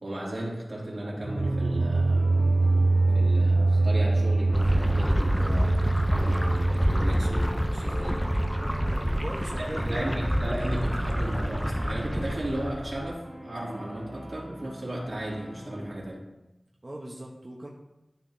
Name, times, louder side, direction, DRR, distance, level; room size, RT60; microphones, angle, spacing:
voice 1, 0.0-2.3 3.1-8.3 9.6-16.2, right 1 dB, 70° right, -5 dB, 2.3 m, -35 dB
sound 1, 1.1-10.1, right 2 dB, 85° right, 0.3 m, -25 dB
sound 2, 1.2-16.0, equal, 50° left, 2.8 m, -44 dB
sound 3, 4.5-13.1, equal, ahead, 0.5 m, -28 dB
voice 2, 8.8-10.3 16.8-17.7, right 1 dB, 40° right, -3 dB, 0.8 m, -40 dB
12.0 x 4.9 x 2.6 m, 0.96 s
wide cardioid pair, 65°, 0 cm